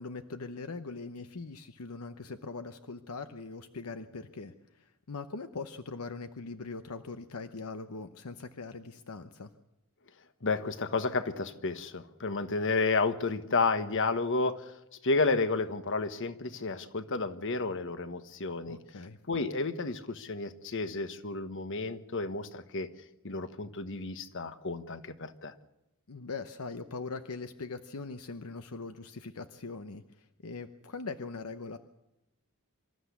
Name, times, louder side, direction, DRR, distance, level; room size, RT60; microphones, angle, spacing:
voice 1, 0.0-9.5 18.7-19.2 26.1-31.8, left 4 dB, 75° left, 9 dB, 0.9 m, -41 dB
voice 2, 10.4-14.7 15.0-18.8 19.3-22.9 23.2-25.5, left 3 dB, 60° left, 11 dB, 1.3 m, -31 dB
25.5 x 13.5 x 8.3 m, 0.92 s
head